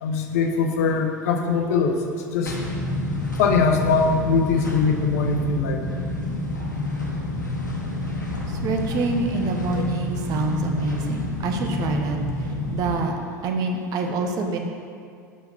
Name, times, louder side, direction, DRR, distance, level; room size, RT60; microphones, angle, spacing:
voice 1, 0.0-2.6 3.4-5.8, left 4 dB, 60° left, 5 dB, 0.7 m, -22 dB
sound 1, 2.5-13.0, left 2 dB, 85° left, 1.0 m, -29 dB
voice 2, 8.5-13.1 13.4-14.6, right 3 dB, 40° right, 3 dB, 0.8 m, -26 dB
5.7 x 5.4 x 5.7 m, 2.3 s
figure-of-eight pair, 75°, 10 cm